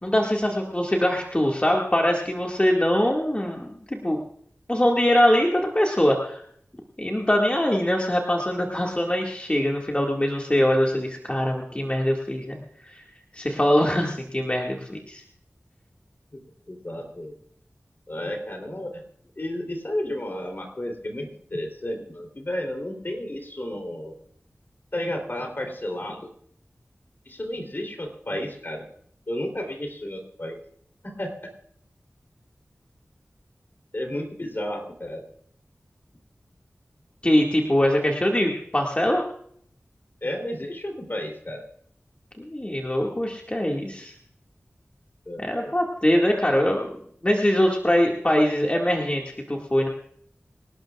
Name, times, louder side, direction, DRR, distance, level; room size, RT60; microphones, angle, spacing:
voice 1, 0.0-4.2 4.7-6.4 7.0-12.6 12.8-13.0 13.3-15.2 37.2-39.2 42.4-44.1 45.4-47.0 47.2-49.2 49.5-49.9, left 1 dB, 25° left, -1 dB, 2.0 m, -23 dB
voice 2, 16.7-17.4 18.1-19.0 19.4-24.2 24.9-26.3 27.2-28.8 29.3-30.6 31.0-31.3 33.9-35.2 40.2-41.7 45.3-45.7, left 1 dB, 45° left, 3 dB, 3.3 m, -32 dB
26.0 x 12.0 x 2.4 m, 0.65 s
wide cardioid pair, 45°, 5 cm